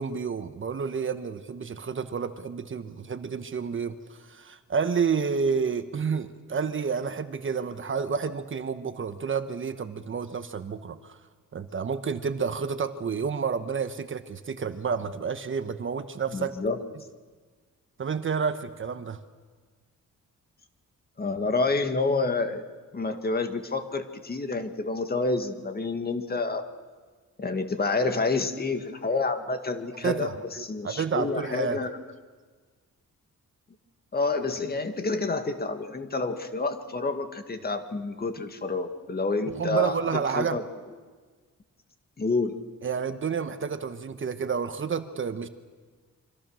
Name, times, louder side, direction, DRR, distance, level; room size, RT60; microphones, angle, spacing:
voice 1, 0.0-11.2 11.5-16.6 18.0-19.2 30.0-31.8 39.6-40.6 42.8-45.5, right 6 dB, 40° right, 10 dB, 1.1 m, -30 dB
voice 2, 16.3-16.8 21.2-22.6 22.9-26.7 27.4-32.0 34.1-40.6 42.2-42.6, left 3 dB, 30° left, 7 dB, 1.9 m, -28 dB
27.0 x 25.5 x 6.4 m, 1.4 s
wide cardioid pair, 140°, 31 cm